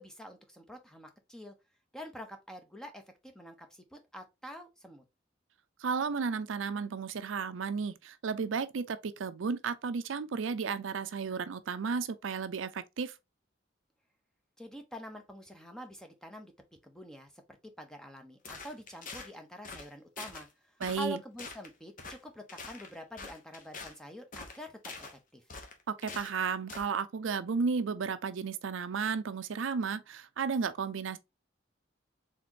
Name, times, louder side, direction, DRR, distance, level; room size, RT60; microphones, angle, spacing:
voice 1, 0.0-1.5 1.9-5.0 14.6-16.5 16.8-25.4, equal, 5° left, 0.7 m, -46 dB
voice 2, 5.8-13.2 20.8-21.2 25.9-31.2, right 5 dB, 75° right, 0.5 m, -33 dB
sound 1, 18.4-19.3 19.6-19.9 20.2-20.5 20.8-21.1 21.4-21.7 22.0-22.2 22.5-23.9 24.3-25.1 25.5-26.4 26.7-26.9, left 4 dB, 45° left, 0.9 m, -45 dB
4.2 x 3.6 x 2.9 m
head